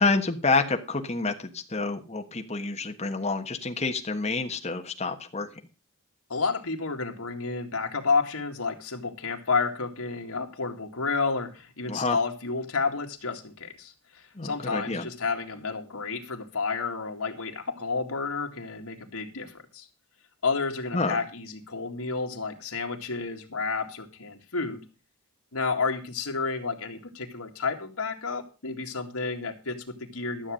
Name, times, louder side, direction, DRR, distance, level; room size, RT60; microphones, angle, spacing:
voice 1, 0.0-5.5 11.9-12.2 14.3-15.0 20.9-21.2, left 3 dB, 30° left, 4 dB, 1.3 m, -28 dB
voice 2, 6.3-19.9 20.4-24.8 25.5-30.5, left 4 dB, 75° left, 3 dB, 2.2 m, -31 dB
13.0 x 7.3 x 6.4 m, 0.33 s
head